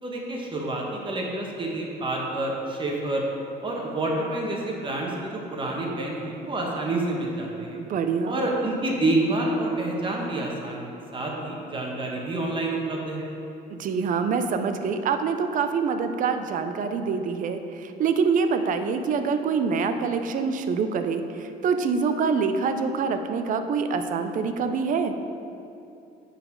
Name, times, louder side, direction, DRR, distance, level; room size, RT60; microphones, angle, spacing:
voice 1, 0.0-3.2 3.6-7.8 8.2-13.3, right 2 dB, 30° right, -1 dB, 1.3 m, -28 dB
voice 2, 7.7-8.4 13.7-25.1, right 5 dB, 50° right, 8 dB, 0.6 m, -25 dB
10.0 x 4.1 x 4.6 m, 2.7 s
cardioid pair, 110°, 17 cm